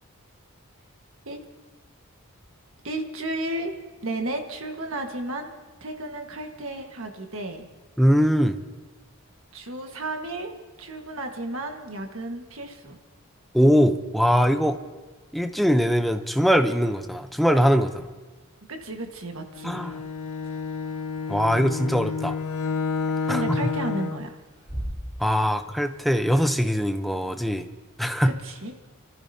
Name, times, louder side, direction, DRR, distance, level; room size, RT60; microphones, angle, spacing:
voice 1, 2.8-3.7 4.0-5.5 5.8-7.7 9.5-13.0 18.7-19.9 23.2-24.4 28.4-28.7, right 1 dB, 70° right, 3 dB, 1.6 m, -33 dB
voice 2, 8.0-8.6 13.5-14.8 15.3-18.1 19.6-20.0 21.3-22.4 23.3-23.7 25.2-27.7 28.0-28.3, equal, ahead, 7 dB, 0.7 m, -21 dB
Bowed string instrument, 19.6-24.3, left 5 dB, 85° left, 0.6 m, -30 dB
sound 1, 20.4-20.5 21.3-21.4 22.9-23.3 23.6-24.1 24.4-25.7 26.0-26.1 26.2-26.5, equal, 25° right, 6.6 m, -37 dB
29.5 x 14.0 x 2.8 m, 1.3 s
head